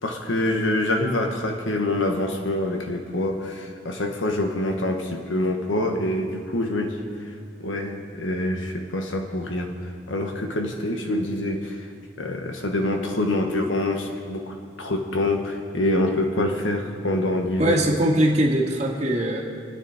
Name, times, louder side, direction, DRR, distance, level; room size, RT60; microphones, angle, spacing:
voice 1, 0.0-7.0 7.2-7.3 7.6-9.7 10.1-11.9 12.2-17.8, left 1 dB, 90° left, 3 dB, 1.4 m, -26 dB
voice 2, 17.6-19.4, right 1 dB, 35° right, -2 dB, 1.8 m, -21 dB
28.0 x 9.6 x 4.3 m, 2.3 s
head